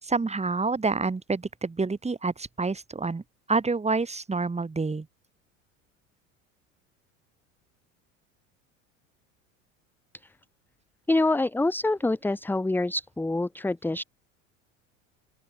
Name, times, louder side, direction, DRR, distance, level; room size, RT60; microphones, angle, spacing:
voice 1, 0.0-3.2 3.5-5.1, right 4 dB, 15° right, 6.6 m, -28 dB
voice 2, 11.1-14.0, left 2 dB, 5° left, 1.0 m, -26 dB
open air
hypercardioid pair, 75°, 39 cm